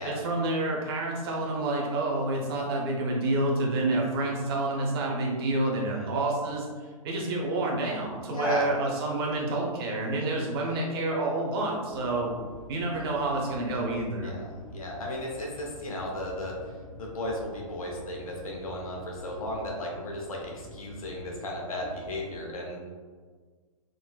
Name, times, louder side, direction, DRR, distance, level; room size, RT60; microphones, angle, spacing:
voice 1, 0.0-6.7 7.0-12.3 12.7-14.3, right 2 dB, 40° right, -2 dB, 0.7 m, -28 dB
voice 2, 5.7-6.1 8.3-8.7 14.2-16.6 17.0-22.8, left 1 dB, 75° left, -1 dB, 0.8 m, -35 dB
sound 1, 11.9-22.4, left 2 dB, 35° left, 0.5 m, -47 dB
3.8 x 2.0 x 2.3 m, 1.5 s
hypercardioid pair, 135°, 19 cm